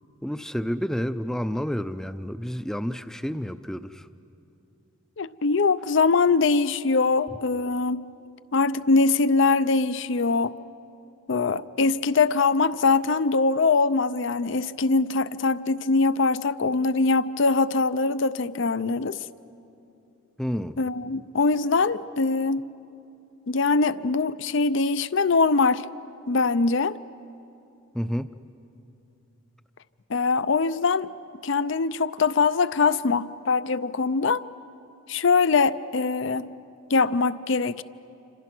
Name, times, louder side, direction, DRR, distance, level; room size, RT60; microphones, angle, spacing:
voice 1, 0.2-4.1 20.4-20.8 27.9-28.3, equal, 5° left, 0.5 m, -30 dB
voice 2, 5.2-8.1 8.5-10.5 11.3-19.2 20.8-22.6 23.5-25.9 26.3-27.0 30.1-31.1 31.4-34.4 35.1-36.5 36.9-37.8, left 4 dB, 60° left, 0.5 m, -22 dB
27.5 x 26.0 x 6.1 m
head